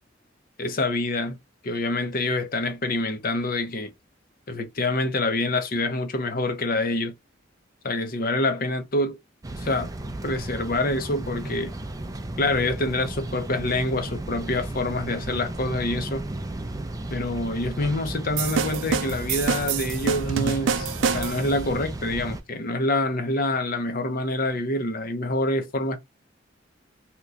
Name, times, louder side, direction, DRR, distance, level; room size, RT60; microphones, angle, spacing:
voice 1, 0.6-1.4 1.6-3.9 4.5-7.1 7.8-9.2 9.6-9.9 10.2-11.7 12.4-16.2 17.1-26.0, left 2 dB, 50° left, 0.7 m, -26 dB
sound 1, 9.4-22.4, right 1 dB, 20° right, 0.4 m, -34 dB
sound 2, 18.4-21.6, right 6 dB, 80° right, 0.4 m, -27 dB
2.9 x 2.2 x 3.7 m
head